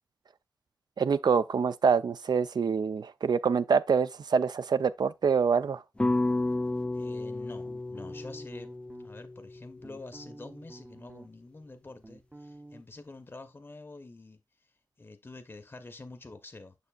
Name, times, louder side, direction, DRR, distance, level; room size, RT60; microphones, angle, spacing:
voice 1, 1.0-5.8, right 6 dB, 80° right, 0.4 m, -26 dB
sound 1, 6.0-10.3, left 2 dB, 15° left, 0.3 m, -32 dB
sound 2, 6.3-7.1 7.6-9.1 9.6-11.5 11.7-12.8, right 2 dB, 20° right, 0.6 m, -50 dB
voice 2, 6.9-8.7 9.0-14.7 15.0-16.7, left 3 dB, 30° left, 0.7 m, -47 dB
6.9 x 6.4 x 2.3 m
wide cardioid pair, 80°, 7 cm